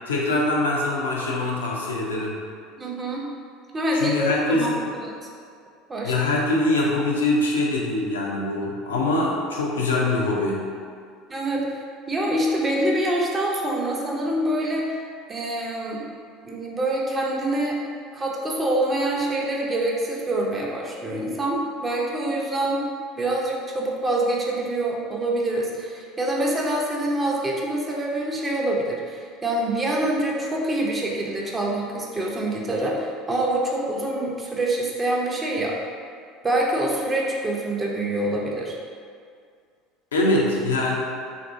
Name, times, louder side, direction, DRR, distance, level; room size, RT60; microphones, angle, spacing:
voice 1, 0.1-2.4 3.9-4.8 6.0-10.7 40.1-41.0, left 2 dB, 85° left, -3 dB, 0.4 m, -23 dB
voice 2, 2.8-3.3 3.7-5.1 5.9-6.1 11.3-15.0 15.3-16.0 16.4-17.8 18.1-22.8 23.2-35.8 36.4-38.8, right 1 dB, 25° right, -2 dB, 0.5 m, -25 dB
2.9 x 2.6 x 2.5 m, 2.2 s
hypercardioid pair, 70°, 0 cm